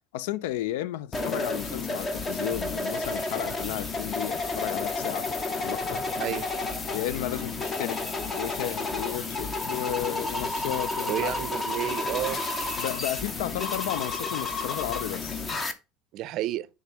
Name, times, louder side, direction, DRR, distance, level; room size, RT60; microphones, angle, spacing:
voice 1, 0.1-5.3 5.6-6.0 6.9-8.0 8.3-11.3 12.8-15.4, left 14 dB, 90° left, 0.4 m, -33 dB
sound 1, 1.1-15.7, left 3 dB, 20° left, 0.7 m, -31 dB
voice 2, 6.2-6.5 11.1-12.4 16.1-16.7, right 14 dB, 45° right, 0.5 m, -31 dB
6.0 x 3.6 x 5.6 m
cardioid pair, 160°, 0 cm